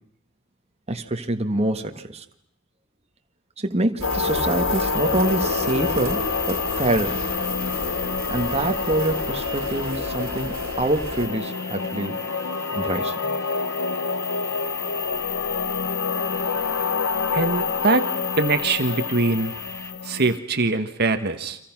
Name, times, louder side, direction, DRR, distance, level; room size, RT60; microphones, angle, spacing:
voice 1, 0.9-2.2 3.6-7.2 8.3-12.2 12.7-13.3, right 2 dB, 30° right, 6 dB, 1.6 m, -26 dB
sound 1, 4.0-20.4, left 5 dB, 90° left, 1.0 m, -27 dB
sound 2, 4.0-11.3, right 2 dB, 75° right, 2.4 m, -33 dB
sound 3, 4.9-19.9, left 1 dB, 15° left, 2.2 m, -41 dB
voice 2, 17.3-18.1 18.4-19.5 20.0-21.6, right 3 dB, 50° right, 8 dB, 1.4 m, -22 dB
30.0 x 26.0 x 6.1 m, 0.73 s
head